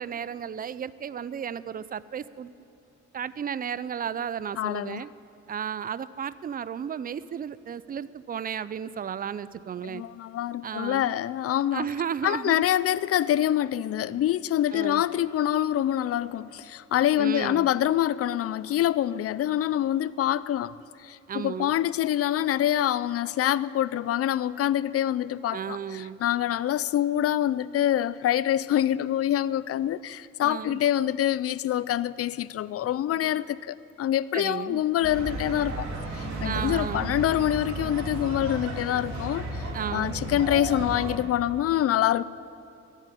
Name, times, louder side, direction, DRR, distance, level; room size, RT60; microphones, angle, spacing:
voice 1, 0.0-2.5 3.1-5.1 5.5-10.0 10.6-11.1 11.7-12.6 14.7-15.0 17.2-17.7 21.3-21.7 25.5-26.2 30.4-30.8 34.3-34.8 36.4-37.1 39.7-40.2, right 8 dB, 30° right, 17 dB, 0.4 m, -33 dB
voice 2, 4.6-5.0 9.8-11.9 12.2-20.7 21.0-35.9 36.1-42.2, left 12 dB, 50° left, 18 dB, 0.5 m, -26 dB
sound 1, 35.0-41.2, right 2 dB, 65° right, 2.6 m, -33 dB
14.5 x 7.7 x 9.9 m, 2.6 s
cardioid pair, 90°, 30 cm